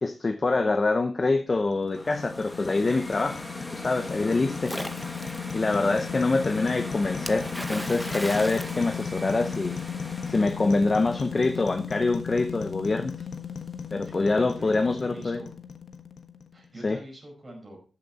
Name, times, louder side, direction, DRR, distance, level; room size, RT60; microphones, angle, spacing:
voice 1, 0.0-3.4 3.7-4.7 5.5-9.8 10.3-13.1 13.9-15.4 16.8-17.0, left 3 dB, 30° left, 0.7 m, -25 dB
sound 1, 1.5-16.7, left 7 dB, 80° left, 1.2 m, -36 dB
sound 2, 1.9-12.9, left 1 dB, 10° left, 1.4 m, -40 dB
Splash splatter, 4.6-5.6 7.3-9.7, equal, 5° right, 0.8 m, -37 dB
voice 2, 14.0-15.5 16.5-17.8, right 1 dB, 25° right, 5.0 m, -44 dB
13.5 x 7.2 x 4.1 m
wide cardioid pair, 170°, 0 cm